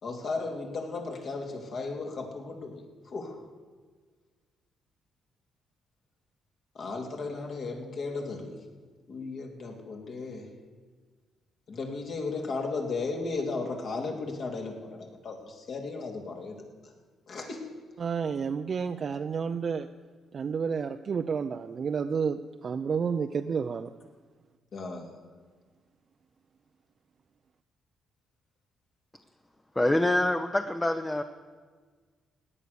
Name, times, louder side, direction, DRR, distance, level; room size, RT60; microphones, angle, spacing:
voice 1, 0.0-3.4 6.7-8.5 9.1-10.5 11.7-16.6 17.3-17.6 24.7-25.2, left 3 dB, 55° left, 2 dB, 3.0 m, -35 dB
voice 2, 18.0-19.9 20.3-23.9, right 6 dB, 45° right, 6 dB, 0.6 m, -30 dB
voice 3, 29.8-31.2, left 1 dB, 15° left, 8 dB, 0.8 m, -25 dB
17.0 x 9.9 x 6.9 m, 1.5 s
cardioid pair, 90°, 0 cm